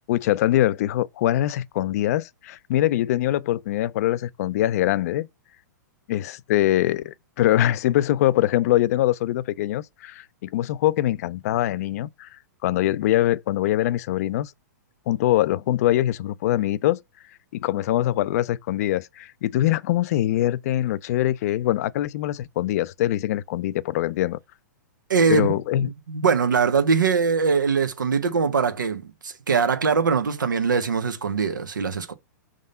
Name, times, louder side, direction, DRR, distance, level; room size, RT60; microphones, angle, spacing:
voice 1, 0.1-5.3 6.1-14.5 15.1-17.0 17.5-24.4 25.3-25.9, left 14 dB, 55° left, 0.4 m, -23 dB
voice 2, 25.1-32.1, right 5 dB, 90° right, 1.0 m, -22 dB
5.3 x 3.6 x 5.4 m
hypercardioid pair, 125°, 10 cm